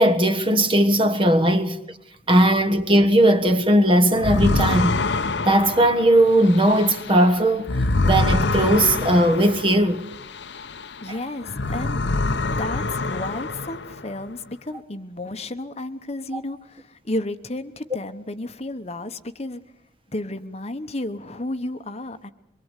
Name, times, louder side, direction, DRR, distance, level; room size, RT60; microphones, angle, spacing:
voice 1, 0.0-1.8 2.3-5.0 5.4-7.7 8.0-10.0 12.5-12.6, right 1 dB, 30° right, 1.4 m, -18 dB
sound 1, 4.1-11.1 11.4-14.1, left 3 dB, 70° left, 1.0 m, -25 dB
voice 2, 11.0-12.0 12.6-19.6 20.1-22.3, left 1 dB, 35° left, 1.1 m, -32 dB
24.5 x 22.5 x 8.3 m
head